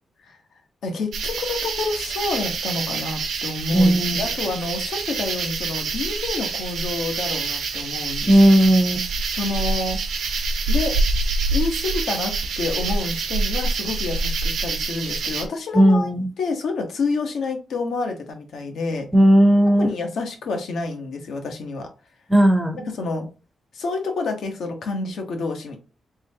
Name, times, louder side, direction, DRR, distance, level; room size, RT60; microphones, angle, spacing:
voice 1, 0.8-8.3 9.3-10.0 10.7-11.0 11.5-16.1 16.4-19.1 19.8-21.9 22.9-23.3 23.7-25.8, left 3 dB, 70° left, 0.9 m, -28 dB
sound 1, 1.1-15.4, right 3 dB, 80° right, 0.7 m, -26 dB
voice 2, 3.7-4.2 8.3-9.0 15.7-16.3 19.1-19.9 22.3-22.9, equal, 5° right, 0.6 m, -15 dB
3.8 x 3.2 x 2.8 m
wide cardioid pair, 170°, 0 cm